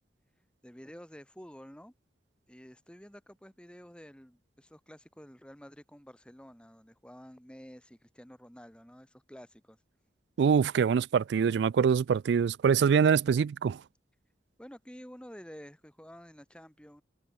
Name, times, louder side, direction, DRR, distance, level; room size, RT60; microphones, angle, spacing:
voice 1, 0.6-1.9 2.5-9.8 14.6-17.0, equal, 5° left, 2.1 m, -50 dB
voice 2, 10.4-13.8, right 6 dB, 75° right, 0.3 m, -24 dB
head